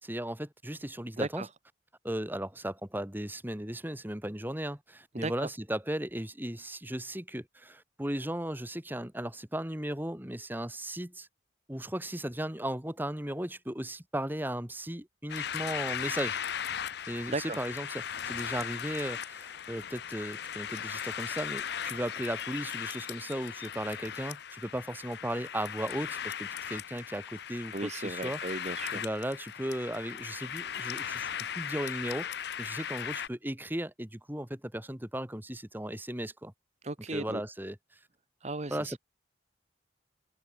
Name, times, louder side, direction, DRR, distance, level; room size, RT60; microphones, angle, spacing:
voice 1, 0.0-1.4 2.0-11.3 11.7-16.4 17.1-28.4 28.9-36.5 37.1-37.8 38.7-39.0, right 1 dB, 10° right, 2.3 m, -36 dB
voice 2, 1.2-1.5 5.1-5.5 17.3-17.6 27.7-29.0 36.8-37.4 38.4-39.0, right 2 dB, 35° right, 1.2 m, -36 dB
sound 1, 15.3-33.3, left 8 dB, 60° left, 0.6 m, -38 dB
head